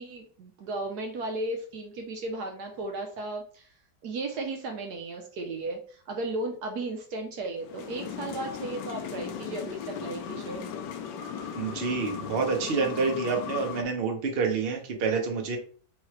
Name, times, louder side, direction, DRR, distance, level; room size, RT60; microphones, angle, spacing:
voice 1, 0.0-3.7 4.0-10.6, right 2 dB, 70° right, 3 dB, 1.2 m, -35 dB
sound 1, 7.6-13.8, left 7 dB, 80° left, 1.2 m, -37 dB
voice 2, 11.6-15.6, right 5 dB, 45° right, 2 dB, 0.9 m, -28 dB
4.7 x 3.1 x 3.1 m, 0.43 s
omnidirectional pair, 1.9 m